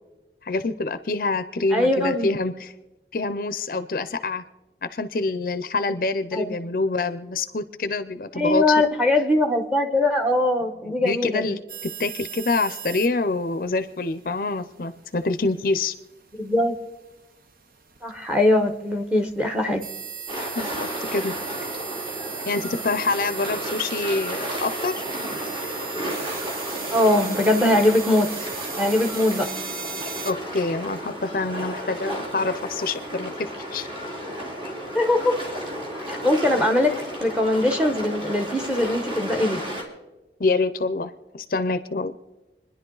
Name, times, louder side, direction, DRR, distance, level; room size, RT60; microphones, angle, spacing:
voice 1, 0.4-2.7 3.1-4.4 4.8-8.8 10.8-15.9 20.6-21.3 22.5-25.0 30.2-33.9 34.6-34.7 40.4-42.1, left 3 dB, 50° left, 12 dB, 0.5 m, -26 dB
voice 2, 1.7-2.3 6.3-6.6 8.3-11.6 16.4-16.8 18.0-19.8 26.9-28.3 28.8-29.5 34.9-35.4 36.1-36.9 37.2-39.6, left 1 dB, 5° right, 5 dB, 1.1 m, -21 dB
sound 1, 11.7-30.3, right 7 dB, 50° right, 0.8 m, -37 dB
sound 2, 20.3-39.8, equal, 30° right, 2.3 m, -33 dB
27.0 x 10.5 x 3.9 m, 1.1 s
head